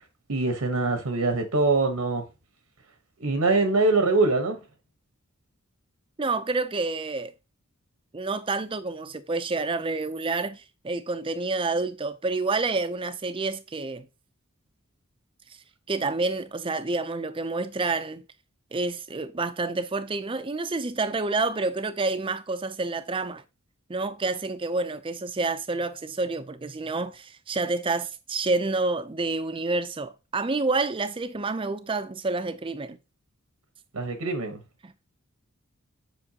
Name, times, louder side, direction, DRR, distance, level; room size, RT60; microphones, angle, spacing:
voice 1, 0.3-2.2 3.2-4.6 33.9-34.6, right 3 dB, 85° right, 1.1 m, -23 dB
voice 2, 6.2-7.3 8.1-14.1 15.9-18.2 18.7-23.4 23.9-33.0 34.8-34.9, right 3 dB, 25° right, 0.5 m, -28 dB
7.7 x 5.5 x 2.8 m
head